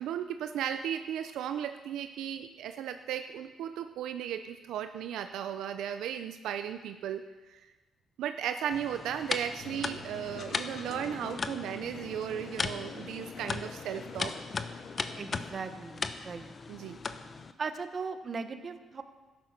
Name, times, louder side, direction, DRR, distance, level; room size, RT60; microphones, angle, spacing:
voice 1, 0.0-7.6 8.2-14.3 16.7-17.0, right 9 dB, 85° right, 8 dB, 0.5 m, -36 dB
sound 1, 8.7-17.5, left 4 dB, 35° left, 0.8 m, -38 dB
sound 2, 9.6-15.6, left 4 dB, 55° left, 1.4 m, -45 dB
voice 2, 15.1-16.5 17.6-19.0, right 5 dB, 45° right, 9 dB, 1.1 m, -38 dB
13.0 x 10.5 x 6.0 m, 1.2 s
cardioid pair, 90°, 0 cm